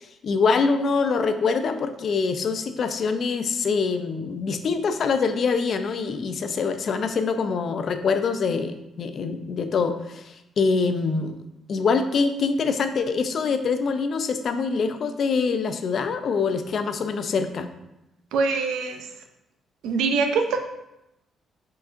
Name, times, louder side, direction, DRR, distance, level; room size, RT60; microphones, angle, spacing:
voice 1, 0.2-10.2 10.6-11.4 11.7-17.7, left 5 dB, 55° left, 9 dB, 0.4 m, -24 dB
voice 2, 18.3-19.1 19.8-20.6, right 4 dB, 85° right, 5 dB, 0.5 m, -23 dB
4.9 x 4.0 x 2.5 m, 0.88 s
cardioid pair, 90°, 0 cm